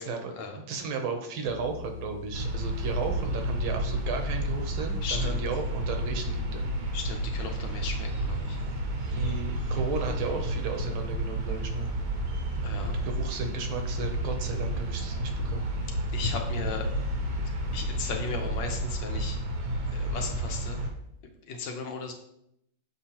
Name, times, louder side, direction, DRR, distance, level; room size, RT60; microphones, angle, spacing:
voice 1, 0.0-0.3 0.7-6.7 9.1-11.9 12.8-15.7, right 4 dB, 80° right, 4 dB, 1.7 m, -34 dB
sound 1, 1.5-18.6, left 6 dB, 85° left, 1.5 m, -42 dB
sound 2, 2.3-20.9, right 1 dB, 55° right, 1.1 m, -31 dB
voice 2, 5.0-5.4 6.9-8.6 12.6-12.9 16.1-16.9 17.7-19.4 19.9-20.8 21.5-22.1, left 4 dB, 65° left, 3 dB, 1.4 m, -36 dB
6.8 x 5.6 x 2.9 m, 0.77 s
omnidirectional pair, 2.3 m